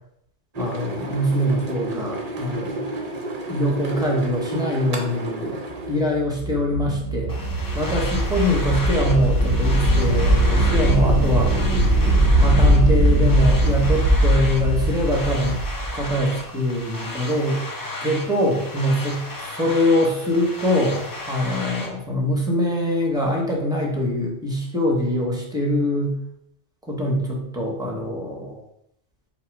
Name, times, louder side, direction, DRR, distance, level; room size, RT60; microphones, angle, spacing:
sound 1, 0.5-6.0, right 2 dB, 40° right, 0.7 m, -31 dB
voice 1, 0.6-2.9 3.5-5.6 5.9-7.3 7.7-11.5 12.4-15.6 15.9-17.6 18.0-26.2 26.9-28.6, equal, 5° right, -1 dB, 0.9 m, -23 dB
sound 2, 6.1-16.2, right 1 dB, 90° right, 1.0 m, -20 dB
sound 3, 7.3-21.9, left 2 dB, 25° left, 0.4 m, -34 dB
5.0 x 2.2 x 4.7 m, 0.74 s
omnidirectional pair, 1.2 m